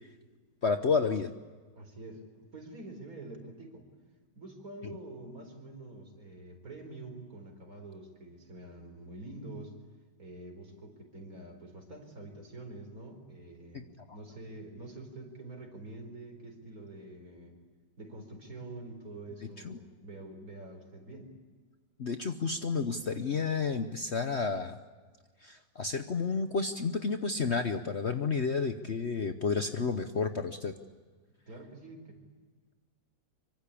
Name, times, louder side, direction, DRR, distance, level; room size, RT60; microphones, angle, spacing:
voice 1, 0.6-1.3 13.7-13.8 14.1-14.2 19.6-19.7 22.0-24.8 25.4-30.7, left 4 dB, 45° left, 8 dB, 1.1 m, -31 dB
voice 2, 1.7-3.9 4.4-9.7 10.2-17.5 18.0-21.3 31.5-32.2, right 2 dB, 55° right, 5 dB, 4.8 m, -46 dB
25.5 x 24.0 x 8.5 m, 1.5 s
omnidirectional pair, 1.9 m